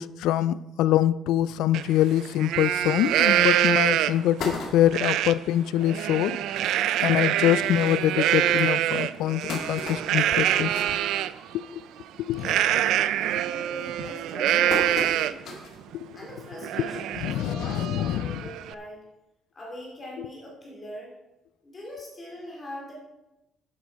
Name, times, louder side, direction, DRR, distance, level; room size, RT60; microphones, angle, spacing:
voice 1, 0.0-6.4 7.0-11.0 11.7-11.8 12.2-12.5 15.9-16.1 16.8-18.4 20.2-20.3, left 12 dB, 90° left, 17 dB, 0.4 m, -25 dB
Livestock farm animals working animals, 1.7-1.8 2.2-4.3 4.9-5.3 5.7-11.3 12.4-15.5 15.9-16.0 16.4-18.7, right 12 dB, 75° right, 0.4 m, -25 dB
sound 1, 3.3-3.4 3.8-3.9 4.1-5.2 5.8-5.9 6.2-6.3 6.6-6.8 7.5-7.6 8.1-8.2 8.9-11.8 12.1-12.5 12.8-13.2 13.8-15.9 16.3-16.4 17.6-17.7, left 2 dB, 55° left, 2.1 m, -36 dB
voice 2, 12.3-15.4 16.1-19.0 19.5-21.1 21.6-22.9, equal, 20° left, -2 dB, 2.5 m, -41 dB
10.5 x 8.2 x 4.6 m, 0.96 s
cardioid pair, 165°, 0 cm